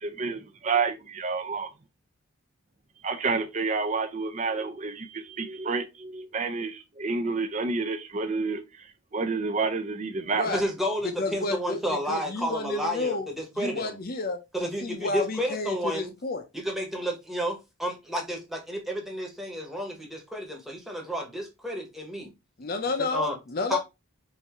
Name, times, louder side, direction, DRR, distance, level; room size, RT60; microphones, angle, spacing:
voice 1, 0.0-1.7 3.0-10.6, right 4 dB, 35° right, 0.5 m, -29 dB
voice 2, 10.5-13.9 14.5-16.1 16.6-22.3 23.1-23.4 23.7-23.8, equal, ahead, 1.0 m, -31 dB
voice 3, 11.0-13.3 13.6-16.4 22.6-23.8, left 3 dB, 45° left, 0.6 m, -31 dB
5.6 x 2.7 x 3.0 m
head